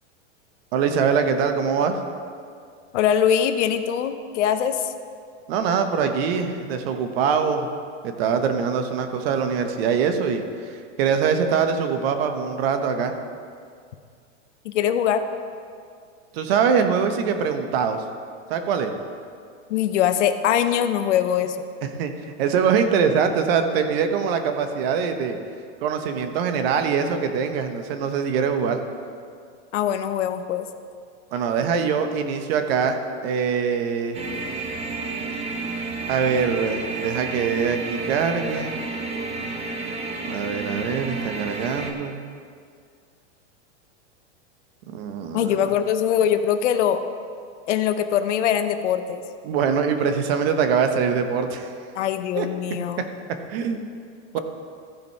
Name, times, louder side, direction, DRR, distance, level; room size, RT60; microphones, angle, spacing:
voice 1, 0.7-2.0 5.5-7.7 8.0-13.1 16.3-18.0 18.5-18.9 22.0-25.4 25.8-28.8 31.3-34.2 36.1-38.7 40.3-42.2 44.9-45.7 49.4-51.7 52.4-52.5 53.5-53.9 54.3-54.4, right 6 dB, 55° right, 7 dB, 1.1 m, -23 dB
voice 2, 2.9-4.9 14.6-15.2 19.7-21.6 29.7-30.7 45.3-47.0 47.7-49.2 51.9-53.1, left 9 dB, 75° left, 9 dB, 0.8 m, -22 dB
sound 1, 34.1-41.9, right 3 dB, 15° right, 0.8 m, -31 dB
15.0 x 5.2 x 4.6 m, 2.3 s
supercardioid pair, 135°, 36 cm